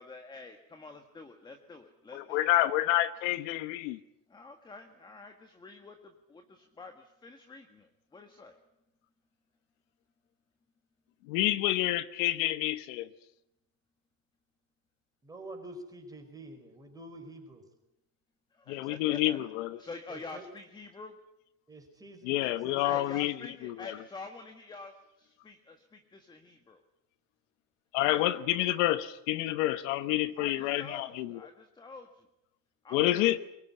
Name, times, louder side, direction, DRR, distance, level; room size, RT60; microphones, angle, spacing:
voice 1, 0.0-2.5 4.3-8.6 18.5-19.4 19.8-21.1 22.8-26.8 28.1-28.4 30.4-32.3 32.8-33.3, left 3 dB, 10° left, 6 dB, 1.5 m, -47 dB
voice 2, 2.1-4.0 11.3-13.1 18.7-19.8 22.2-23.3 23.6-24.0 27.9-31.4 32.9-33.4, left 15 dB, 60° left, 13 dB, 1.1 m, -28 dB
voice 3, 15.2-17.6 20.1-20.4 21.7-22.4 22.6-23.0 33.0-33.4, right 1 dB, 10° right, 5 dB, 4.6 m, -47 dB
23.5 x 20.5 x 9.9 m, 0.86 s
supercardioid pair, 160°, 42 cm